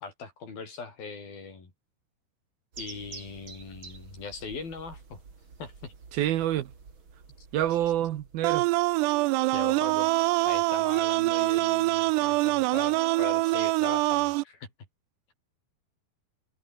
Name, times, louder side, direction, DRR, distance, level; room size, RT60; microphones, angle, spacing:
voice 1, 0.0-1.7 2.8-5.2 5.6-5.9 9.5-10.1 10.4-14.7, left 4 dB, 60° left, 7.9 m, -40 dB
sound 1, 2.7-9.0, right 5 dB, 30° right, 3.5 m, -49 dB
voice 2, 6.1-6.7 7.5-8.8, right 12 dB, 70° right, 2.9 m, -27 dB
sound 2, 8.4-14.4, right 22 dB, 90° right, 2.7 m, -25 dB
omnidirectional pair, 4.7 m